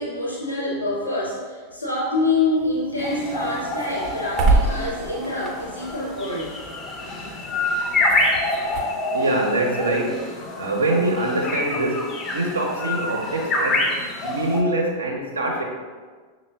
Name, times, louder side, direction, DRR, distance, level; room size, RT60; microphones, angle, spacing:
voice 1, 0.0-6.6, left 2 dB, 80° left, -4 dB, 0.9 m, -26 dB
sound 1, 2.6-8.8, right 2 dB, 30° right, 0.6 m, -28 dB
sound 2, 3.0-14.6, left 2 dB, 25° left, 0.4 m, -27 dB
voice 2, 9.1-10.2 10.6-12.1 12.3-13.9 14.2-15.6, right 2 dB, 75° right, 0 dB, 0.5 m, -24 dB
5.5 x 2.0 x 2.2 m, 1.5 s
figure-of-eight pair, 90°, 0 cm